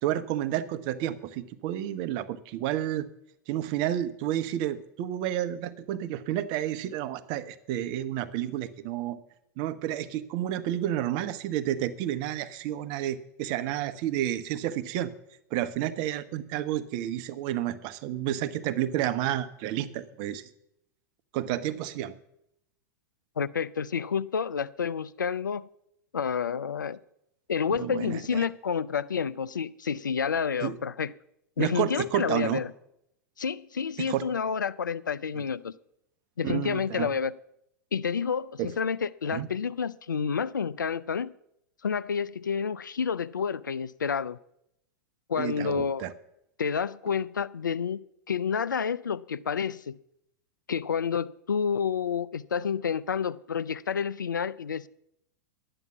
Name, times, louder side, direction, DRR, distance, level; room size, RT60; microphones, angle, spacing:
voice 1, 0.0-3.1 3.5-9.2 9.6-15.1 15.5-20.4 21.3-22.1 27.8-28.4 30.6-30.7 31.6-32.6 34.1-34.2 36.4-37.1 38.6-38.7 39.3-39.5 45.4-46.1, right 12 dB, 50° right, 1.0 m, -30 dB
voice 2, 23.4-25.7 26.1-27.0 27.5-31.1 31.6-32.7 33.4-35.7 36.4-37.3 37.9-41.3 41.8-44.4 45.3-46.1 46.6-48.0 48.3-50.0 50.7-54.9, left 6 dB, 85° left, 0.5 m, -29 dB
11.0 x 8.9 x 7.2 m
hypercardioid pair, 95°, 10 cm